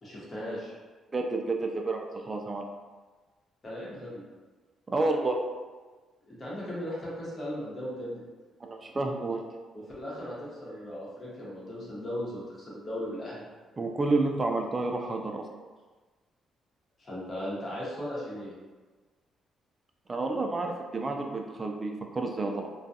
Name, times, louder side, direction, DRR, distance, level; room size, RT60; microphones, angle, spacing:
voice 1, 0.0-0.7 3.6-4.2 6.3-8.2 9.7-13.4 17.0-18.5, equal, 35° left, -7 dB, 1.0 m, -37 dB
voice 2, 1.1-2.7 4.9-5.4 8.6-9.4 13.8-15.4 20.1-22.7, right 2 dB, 30° right, 3 dB, 0.3 m, -30 dB
2.3 x 2.3 x 2.7 m, 1.3 s
cardioid pair, 90°, 0 cm